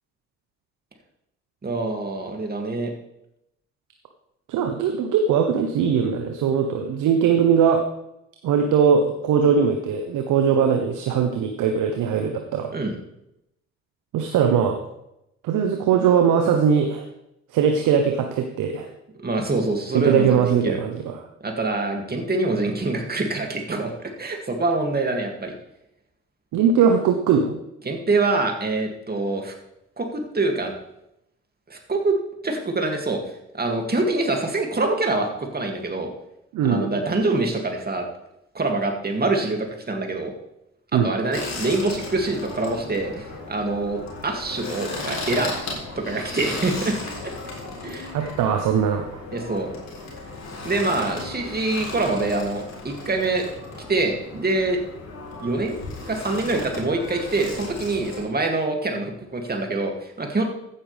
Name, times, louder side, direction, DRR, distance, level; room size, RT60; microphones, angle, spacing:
voice 1, 1.6-2.9 12.7-13.0 19.2-20.8 21.4-25.5 27.8-29.5 30.0-30.7 31.7-32.2 32.4-33.2 33.5-36.1 36.6-38.1 38.5-40.3 40.9-45.5 46.0-47.0 47.2-47.3 47.8-48.1 49.3-49.7 50.6-53.5 53.9-54.8 55.4-55.8 56.1-60.5, right 2 dB, 30° right, 2 dB, 2.7 m, -25 dB
voice 2, 4.5-7.8 8.4-12.7 14.1-14.8 15.4-17.1 17.5-18.9 19.9-21.2 26.5-27.5 36.5-36.9 40.9-41.1 48.1-49.2, right 7 dB, 65° right, 5 dB, 1.2 m, -20 dB
sound 1, 41.3-58.2, left 3 dB, 50° left, 4.2 m, -35 dB
15.0 x 8.9 x 3.5 m, 0.84 s
hypercardioid pair, 50°, 34 cm